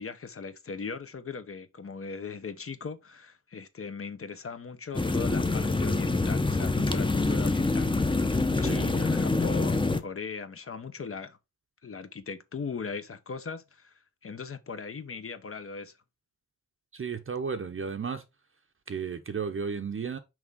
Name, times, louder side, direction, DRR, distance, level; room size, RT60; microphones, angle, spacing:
voice 1, 0.0-11.4 11.8-13.9 14.2-15.9, left 5 dB, 45° left, 0.9 m, -39 dB
sound 1, 4.9-10.0, left 3 dB, 15° left, 0.7 m, -26 dB
voice 2, 8.5-8.9 16.9-18.2 18.9-20.2, right 6 dB, 45° right, 0.7 m, -33 dB
6.2 x 4.7 x 3.6 m
wide cardioid pair, 135°, 31 cm